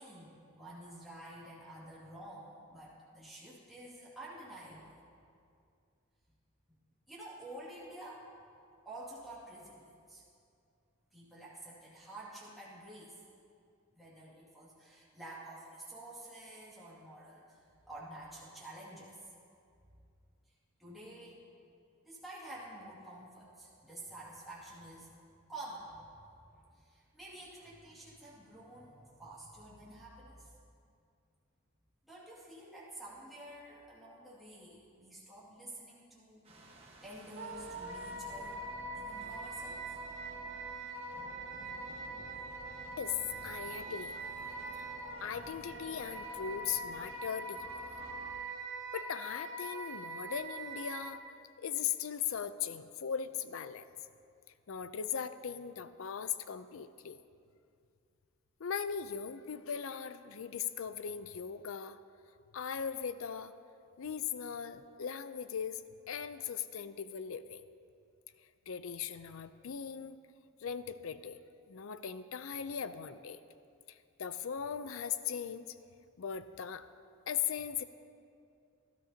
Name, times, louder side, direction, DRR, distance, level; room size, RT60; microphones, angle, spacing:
voice 1, 0.0-5.0 7.1-8.3 8.8-10.2 11.1-13.2 13.9-19.2 20.8-21.5 22.0-25.1 25.5-30.6 32.1-36.7 37.0-40.0 42.1-42.6 43.4-43.5 45.3-45.4, right 1 dB, ahead, -9 dB, 2.2 m, -50 dB
sound 1, 36.4-48.3, right 2 dB, 25° right, 1.3 m, -52 dB
Wind instrument woodwind instrument, 37.4-51.1, right 2 dB, 60° right, 1.1 m, -43 dB
voice 2, 43.4-44.3 44.7-44.9 45.2-47.7 48.9-51.2 51.6-53.9 54.7-57.2 58.6-62.0 62.5-63.5 64.0-67.6 68.7-70.2 70.6-71.4 71.7-73.4 73.9-75.8 76.2-76.9 77.3-77.8, left 8 dB, 70° left, 12 dB, 0.5 m, -39 dB
18.0 x 13.0 x 2.8 m, 2.4 s
head